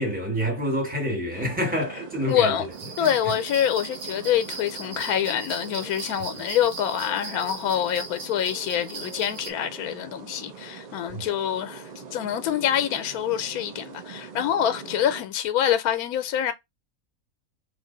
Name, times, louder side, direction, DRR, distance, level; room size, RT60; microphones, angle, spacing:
voice 1, 0.0-2.6 3.0-3.1 11.1-11.2, equal, 5° right, 1.2 m, -27 dB
sound 1, 1.3-15.2, right 6 dB, 70° right, 0.4 m, -42 dB
voice 2, 2.3-2.7 3.0-16.5, left 10 dB, 85° left, 1.1 m, -26 dB
sound 2, 2.7-9.5, right 4 dB, 55° right, 0.8 m, -39 dB
3.2 x 2.4 x 3.8 m
omnidirectional pair, 1.5 m